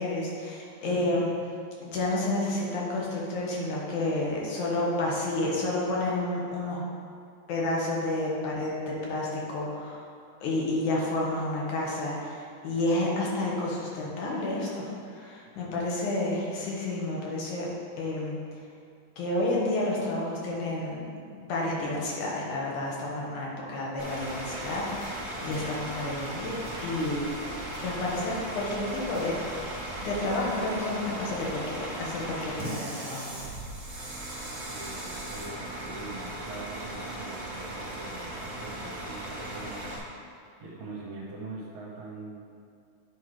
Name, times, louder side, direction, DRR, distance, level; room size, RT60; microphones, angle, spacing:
voice 1, 0.0-1.3 1.8-6.8 7.5-10.1 10.4-17.7 18.0-18.4 19.2-27.2 27.8-29.4 30.0-33.3, left 2 dB, 75° left, -4 dB, 2.8 m, -30 dB
Bus / Idling, 24.0-40.0, right 1 dB, 35° right, 1.8 m, -37 dB
sound 1, 24.5-24.7 25.0-25.8 26.6-26.9 27.7-28.0 29.1-29.6 29.9-30.0, right 1 dB, 10° right, 0.9 m, -48 dB
voice 2, 34.7-42.4, right 2 dB, 65° right, -3 dB, 2.1 m, -43 dB
9.7 x 4.6 x 4.8 m, 2.4 s
omnidirectional pair, 3.6 m